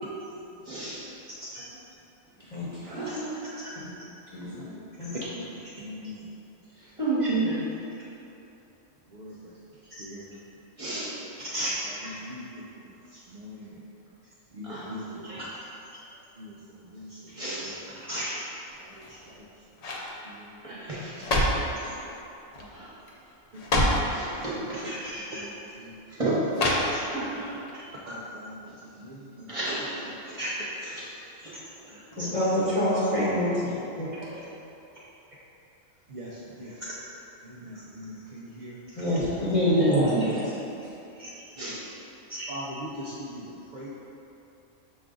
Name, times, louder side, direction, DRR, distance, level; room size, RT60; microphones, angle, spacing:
voice 1, 0.6-1.0 2.8-3.5 7.0-7.5 10.8-11.1 14.6-14.9 17.3-17.6 20.6-21.6 22.7-22.9 24.1-24.8 26.1-26.5 27.1-27.5 29.5-30.0 30.3-30.4 31.4-31.5 31.9-32.0 39.8-40.2 41.6-41.8, right 2 dB, 30° right, -10 dB, 1.0 m, -31 dB
voice 2, 1.3-1.8 2.4-2.5 3.0-3.2 3.6-3.8 4.4-6.3 7.2-7.3 9.1-10.3 11.4-13.9 14.5-15.5 16.4-17.7 18.1-18.3 18.8-19.5 20.0-20.6 21.1-21.2 21.8-22.0 22.5-22.8 23.5-24.0 24.2-26.0 26.9-27.1 27.3-27.4 28.1-28.7 29.0-29.5 30.1-30.7 31.9-32.4 34.3-34.4 36.1-36.9 37.4-39.0 39.4-39.5 41.2-41.7 42.3-43.9, equal, 70° right, -7 dB, 0.4 m, -40 dB
voice 3, 2.5-3.1 4.3-4.6 5.0-5.1 32.2-33.7 34.0-34.1 38.9-40.3, equal, 30° left, -10 dB, 0.9 m, -25 dB
sound 1, 18.9-19.4 19.8-20.1 20.9-21.7 22.5-22.8 23.1-23.2 23.5-24.1 25.1-25.2 26.5-27.3 27.7-27.8, left 1 dB, 80° left, 0.3 m, -26 dB
5.9 x 2.4 x 3.7 m, 2.9 s
omnidirectional pair, 1.4 m